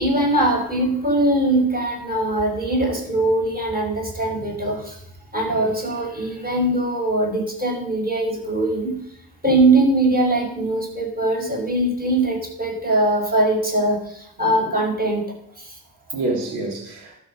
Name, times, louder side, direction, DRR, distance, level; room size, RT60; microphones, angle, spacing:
voice 1, 0.0-5.0 5.3-9.0 9.4-15.2 15.6-15.8, right 1 dB, 20° right, 5.9 m, -21 dB
voice 2, 5.4-5.8 9.4-9.7 12.7-12.8 14.4-14.9 15.8-17.2, right 2 dB, 85° right, 3.4 m, -30 dB
12.5 x 6.6 x 6.5 m
supercardioid pair, 65°, 40 cm